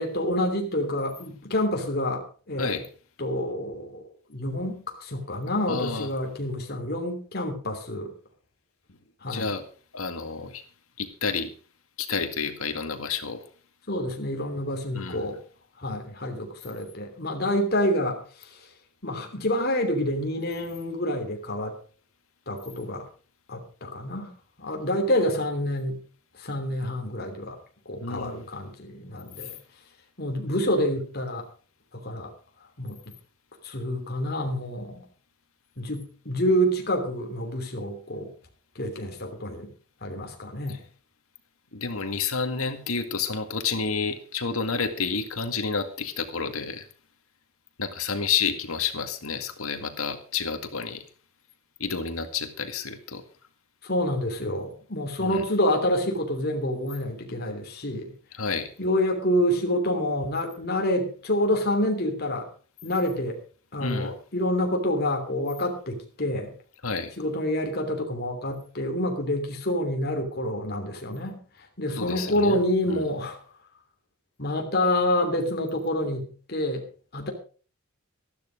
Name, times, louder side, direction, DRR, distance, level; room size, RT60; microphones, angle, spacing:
voice 1, 0.0-2.8 3.2-4.0 4.3-8.1 9.2-9.5 13.9-15.4 15.8-18.7 19.0-21.8 22.5-23.1 23.5-26.0 26.3-27.6 27.8-29.6 30.2-31.5 31.9-32.3 32.8-33.1 33.6-35.0 35.8-38.3 38.7-39.7 40.0-40.8 53.8-58.1 58.8-62.5 62.8-63.4 63.7-66.5 67.2-73.4 74.4-76.9 77.1-77.3, left 1 dB, 50° left, 3 dB, 3.1 m, -28 dB
voice 2, 5.7-6.1 8.9-9.0 9.3-9.6 9.9-10.6 11.0-11.5 12.0-13.5 14.9-15.2 28.0-28.5 29.4-29.5 41.7-46.9 47.8-51.0 51.8-53.2 55.2-55.4 58.3-58.7 63.8-64.1 66.8-67.1 72.0-72.6 72.9-73.0, left 5 dB, 85° left, 7 dB, 2.1 m, -30 dB
13.5 x 12.0 x 5.1 m, 0.40 s
head